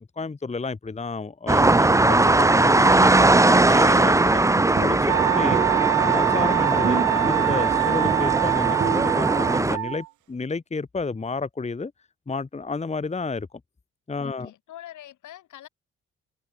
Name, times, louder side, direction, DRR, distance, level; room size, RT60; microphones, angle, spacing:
voice 1, 0.2-4.4 4.8-5.6 6.0-11.9 12.3-13.5 14.1-14.5, left 4 dB, 20° left, 1.3 m, -31 dB
sound 1, 1.5-9.8, right 2 dB, 10° right, 0.7 m, -20 dB
sound 2, 4.4-9.9, right 5 dB, 35° right, 1.7 m, -32 dB
Wind instrument woodwind instrument, 5.1-10.1, right 18 dB, 65° right, 0.5 m, -24 dB
voice 2, 14.2-15.7, left 13 dB, 75° left, 5.2 m, -45 dB
open air
supercardioid pair, 60°, 31 cm